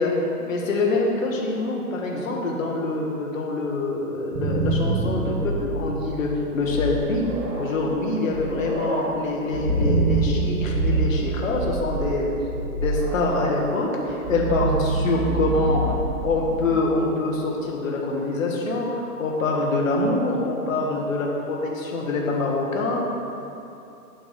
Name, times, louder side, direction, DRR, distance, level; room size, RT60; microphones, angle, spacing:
voice 1, 0.0-7.2 7.6-12.3 12.8-15.9 16.2-23.0, left 2 dB, 55° left, -1 dB, 1.4 m, -25 dB
sound 1, 4.1-16.9, right 2 dB, 55° right, 1.2 m, -26 dB
9.0 x 3.0 x 5.4 m, 2.8 s
figure-of-eight pair, 120°, 46 cm